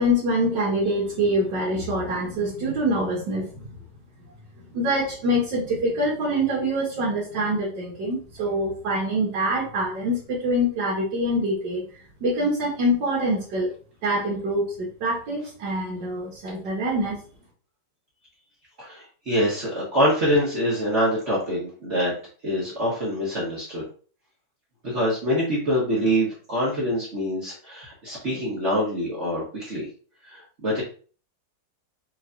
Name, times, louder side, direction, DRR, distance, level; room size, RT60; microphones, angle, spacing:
voice 1, 0.0-3.7 4.7-11.8 12.2-13.7 14.0-17.2, equal, 75° right, -4 dB, 1.7 m, -25 dB
voice 2, 18.8-22.1 22.4-23.8 24.8-29.8 30.3-30.8, equal, 45° right, -6 dB, 1.4 m, -25 dB
4.6 x 3.1 x 2.5 m, 0.40 s
omnidirectional pair, 1.9 m